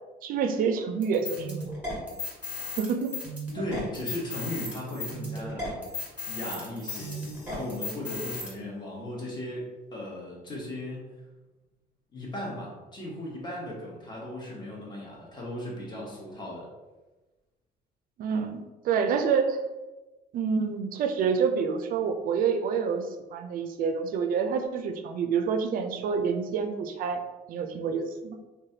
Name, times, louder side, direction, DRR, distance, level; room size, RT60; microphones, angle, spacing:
voice 1, 0.2-1.7 2.6-3.1 18.2-19.6 20.3-23.1 23.3-27.2 27.5-28.4, right 6 dB, 55° right, 6 dB, 0.4 m, -27 dB
sound 1, 1.0-8.5, left 2 dB, 10° right, 1.4 m, -36 dB
voice 2, 3.5-5.8 6.3-7.2 7.5-11.1 12.1-16.7, left 1 dB, 25° left, -4 dB, 1.0 m, -37 dB
Crash cymbal, 6.9-8.6, left 3 dB, 85° left, 0.6 m, -51 dB
3.1 x 2.2 x 2.7 m, 1.2 s
cardioid pair, 110°, 17 cm